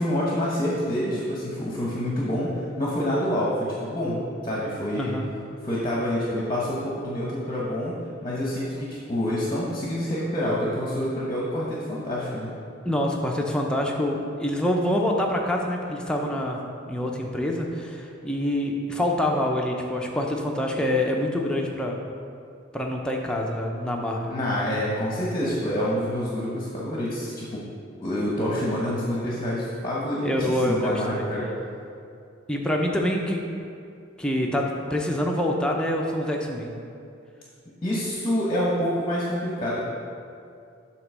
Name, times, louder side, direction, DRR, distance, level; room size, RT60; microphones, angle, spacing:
voice 1, 0.0-5.1 5.6-12.5 24.3-27.6 28.0-31.5 37.8-39.8, equal, 25° left, -5 dB, 0.9 m, -27 dB
voice 2, 12.8-22.0 22.7-24.3 30.2-30.9 31.4-31.5 32.5-33.4 34.2-36.7, left 1 dB, 5° left, 0 dB, 0.5 m, -26 dB
7.7 x 3.0 x 6.0 m, 2.5 s
head